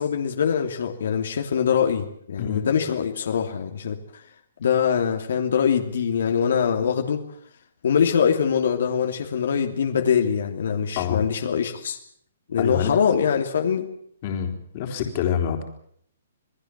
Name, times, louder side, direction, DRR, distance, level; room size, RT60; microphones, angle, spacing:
voice 1, 0.0-4.2 4.6-7.2 7.8-12.0 12.5-13.9, left 7 dB, 65° left, 4 dB, 2.8 m, -23 dB
voice 2, 12.6-12.9 14.2-15.6, left 8 dB, 30° left, 4 dB, 3.8 m, -26 dB
28.0 x 20.0 x 7.5 m, 0.66 s
hypercardioid pair, 170°, 0 cm